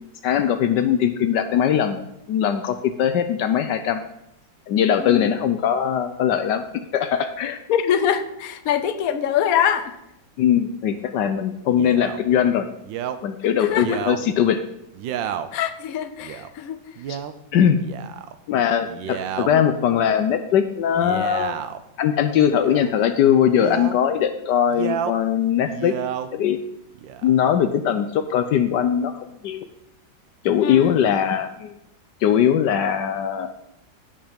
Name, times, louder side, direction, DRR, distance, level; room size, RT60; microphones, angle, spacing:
voice 1, 0.2-2.0 2.3-4.0 4.7-6.7 6.9-7.6 10.4-12.7 13.2-14.6 17.1-17.2 17.5-17.8 18.5-21.6 22.0-26.0 26.3-26.6 27.2-29.7 30.4-31.7 32.2-33.5, left 9 dB, 75° left, 9 dB, 1.3 m, -20 dB
voice 2, 5.0-5.3 7.7-9.9 13.6-14.1 15.5-16.8 19.5-19.6 30.6-31.0, left 9 dB, 55° left, 10 dB, 1.2 m, -23 dB
Male speech man speaking, 11.8-12.2 12.8-13.2 13.7-14.2 14.9-15.5 16.2-16.5 17.0-17.3 17.8-18.4 18.9-19.5 20.9-21.8 22.5-22.9 23.5-24.0 24.7-25.2 25.6-26.3 27.0-27.5, right 9 dB, 90° right, 1.5 m, -31 dB
16.5 x 5.5 x 5.2 m, 0.84 s
omnidirectional pair, 2.0 m